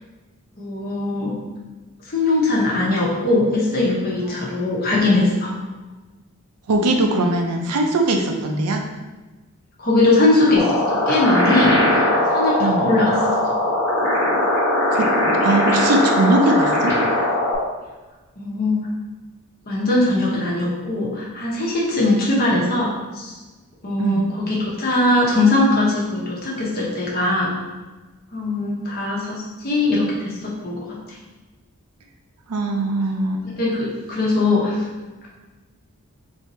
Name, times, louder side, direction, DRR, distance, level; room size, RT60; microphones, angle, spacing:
voice 1, 0.6-1.3 2.1-5.5 9.8-13.2 13.4-13.5 18.4-18.8 19.7-23.3 23.8-27.5 28.3-31.0 33.4-34.8, left 2 dB, 45° left, -5 dB, 0.9 m, -20 dB
voice 2, 6.7-8.8 12.6-12.9 14.9-17.0 24.0-24.3 32.5-33.4, right 2 dB, 90° right, 3 dB, 0.6 m, -21 dB
sound 1, 10.6-17.6, left 1 dB, 10° left, 1.3 m, -19 dB
3.4 x 2.7 x 4.2 m, 1.2 s
head